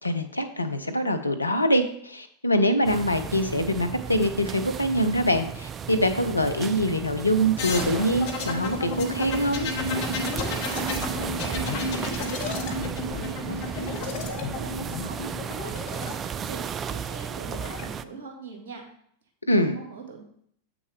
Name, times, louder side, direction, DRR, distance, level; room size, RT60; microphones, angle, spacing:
voice 1, 0.0-9.7 19.5-19.8, equal, 85° left, 7 dB, 0.6 m, -24 dB
sound 1, 2.8-18.0, right 7 dB, 25° right, 0.3 m, -34 dB
sound 2, 7.6-16.1 17.2-17.8, left 4 dB, 45° left, 1.0 m, -32 dB
voice 2, 10.1-18.8 19.5-20.2, right 5 dB, 55° right, 2 dB, 1.8 m, -42 dB
7.8 x 6.1 x 3.4 m, 0.66 s
figure-of-eight pair, 90°, 0 cm